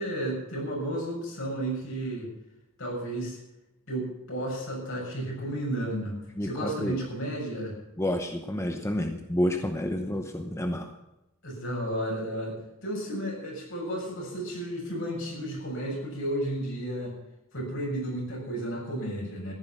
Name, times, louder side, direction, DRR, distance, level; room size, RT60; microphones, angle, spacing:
voice 1, 0.0-2.3 2.8-3.4 3.9-6.2 6.4-7.8 11.4-17.1 17.5-19.5, right 1 dB, 65° left, -1 dB, 6.9 m, -33 dB
voice 2, 6.4-7.0 8.0-10.9, left 1 dB, 15° left, 5 dB, 0.9 m, -29 dB
14.5 x 11.5 x 6.0 m, 0.93 s
head